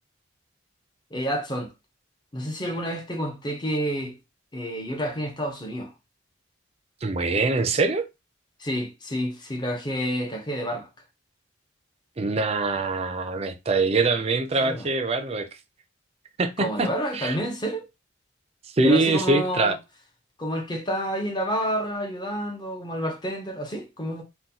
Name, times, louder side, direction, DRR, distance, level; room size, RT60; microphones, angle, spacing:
voice 1, 1.1-1.7 2.3-4.2 4.5-5.9 8.6-10.9 14.6-14.9 16.6-17.9 18.8-19.8 20.4-24.2, equal, 20° left, 0.6 m, -29 dB
voice 2, 7.0-8.0 12.2-15.5 16.4-17.4 18.7-19.8, right 3 dB, 30° right, 0.4 m, -23 dB
3.8 x 2.2 x 2.8 m
head